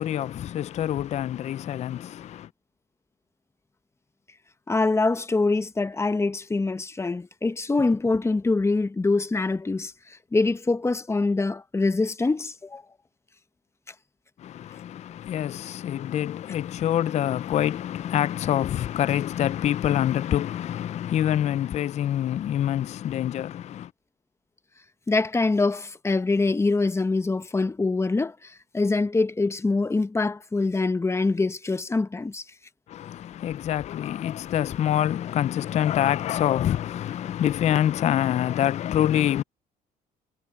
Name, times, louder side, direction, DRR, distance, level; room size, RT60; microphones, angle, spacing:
voice 1, 0.0-2.5 14.4-23.9 32.9-39.4, left 11 dB, 45° left, 0.4 m, -26 dB
voice 2, 4.7-9.9 10.3-12.8 25.1-32.4, left 3 dB, 15° left, 1.0 m, -24 dB
cardioid pair, 110°, 17 cm